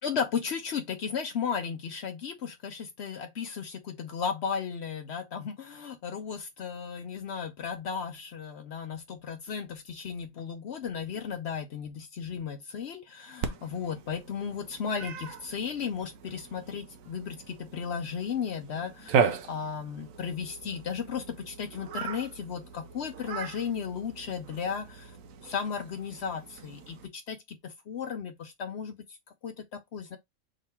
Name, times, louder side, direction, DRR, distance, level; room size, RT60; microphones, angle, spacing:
voice 1, 0.0-29.2 29.4-30.2, left 6 dB, 60° left, 0.8 m, -35 dB
Cat, 13.4-27.1, right 6 dB, 80° right, 1.1 m, -36 dB
3.8 x 2.9 x 4.2 m
omnidirectional pair, 1.4 m